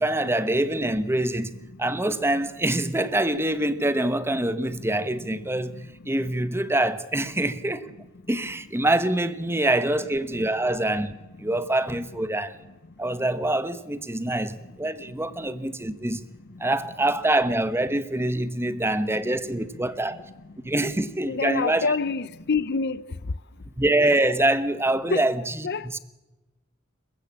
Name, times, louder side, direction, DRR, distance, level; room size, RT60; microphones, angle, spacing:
voice 1, 0.0-1.5 1.8-5.8 6.0-7.9 8.3-11.1 11.4-12.6 13.0-16.2 16.6-20.2 20.6-21.9 23.8-25.4 25.9-26.0, right 1 dB, 10° right, 1.1 m, -25 dB
voice 2, 21.2-23.0 25.1-25.2 25.6-26.0, left 4 dB, 55° left, 0.7 m, -26 dB
27.5 x 15.5 x 8.6 m
head